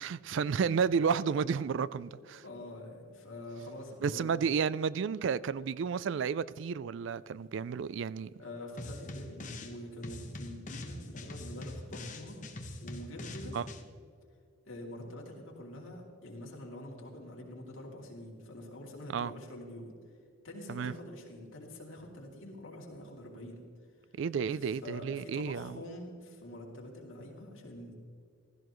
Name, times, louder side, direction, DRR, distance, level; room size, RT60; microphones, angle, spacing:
voice 1, 0.0-2.4 4.0-8.3 13.5-13.6 19.1-19.3 20.7-20.9 24.2-25.8, right 6 dB, 65° right, 0.3 m, -31 dB
voice 2, 2.2-4.3 8.4-12.4 12.8-13.6 14.6-20.0 20.4-23.6 24.6-27.9, left 1 dB, 75° left, 2.8 m, -46 dB
sound 1, 8.8-9.7 10.0-13.8, left 1 dB, 35° left, 1.0 m, -43 dB
15.5 x 14.0 x 3.1 m
head